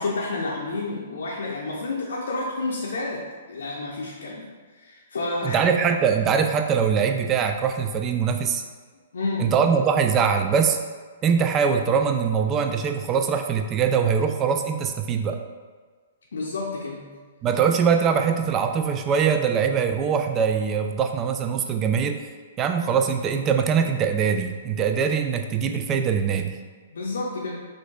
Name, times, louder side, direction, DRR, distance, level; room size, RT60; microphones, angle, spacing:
voice 1, 0.0-4.5 4.8-5.7 9.1-9.5 16.3-17.2 26.9-27.7, left 2 dB, 60° left, -4 dB, 0.6 m, -30 dB
voice 2, 5.4-8.6 9.4-10.8 11.2-15.4 17.4-22.2 22.6-26.5, right 6 dB, 25° right, 6 dB, 0.3 m, -22 dB
5.9 x 2.5 x 2.3 m, 1.5 s
figure-of-eight pair, 115°, 0 cm